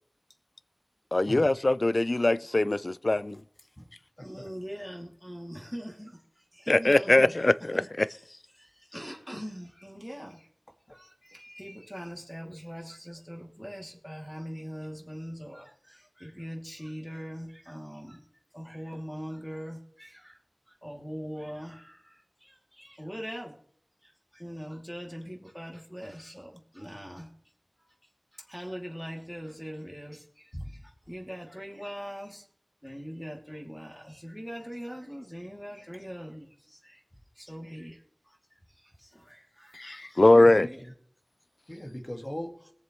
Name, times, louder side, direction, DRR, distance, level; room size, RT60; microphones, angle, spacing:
voice 1, 1.1-3.4 6.7-8.1 39.7-40.7, left 2 dB, 55° left, 0.3 m, -22 dB
voice 2, 4.2-7.5 7.7-8.2 8.5-10.5 10.9-18.2 18.5-20.4 20.7-23.6 24.0-27.3 27.8-27.9 28.3-32.5 32.8-37.0 37.3-40.2 40.5-40.8, equal, 5° left, 2.6 m, -42 dB
voice 3, 41.7-42.7, equal, 30° left, 1.9 m, -39 dB
21.5 x 7.2 x 3.1 m
wide cardioid pair, 50°, 0 cm